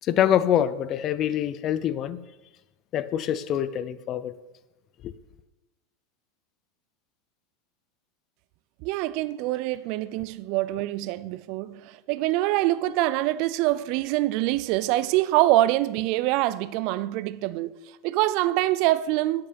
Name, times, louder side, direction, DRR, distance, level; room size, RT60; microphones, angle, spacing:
voice 1, 0.0-2.3 2.9-4.3 5.0-5.1, left 10 dB, 35° left, 0.6 m, -25 dB
voice 2, 8.8-17.8 18.0-19.5, right 16 dB, 55° right, 0.5 m, -25 dB
9.3 x 8.9 x 5.3 m
supercardioid pair, 135°, 0 cm